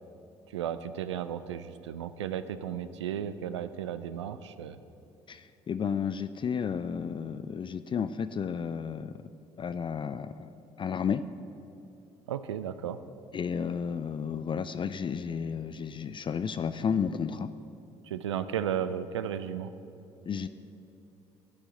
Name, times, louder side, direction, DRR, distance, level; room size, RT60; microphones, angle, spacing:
voice 1, 0.5-4.8 12.3-13.0 18.0-19.7, right 9 dB, 85° right, 13 dB, 0.4 m, -34 dB
voice 2, 5.3-9.1 9.6-10.5 10.8-11.2 13.3-17.5 20.3-20.5, left 7 dB, 35° left, 12 dB, 0.4 m, -32 dB
11.5 x 6.2 x 7.7 m, 2.9 s
hypercardioid pair, 55°, 14 cm